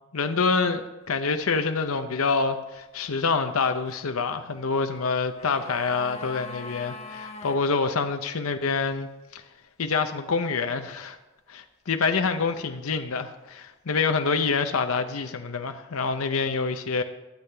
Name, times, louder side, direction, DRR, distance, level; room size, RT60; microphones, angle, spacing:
voice 1, 0.1-9.4 9.8-11.2 11.5-17.0, left 4 dB, 85° left, 7 dB, 0.7 m, -26 dB
sound 1, 5.0-7.6 7.9-8.0, left 3 dB, 30° left, 0.9 m, -41 dB
21.0 x 8.4 x 3.4 m, 1.1 s
head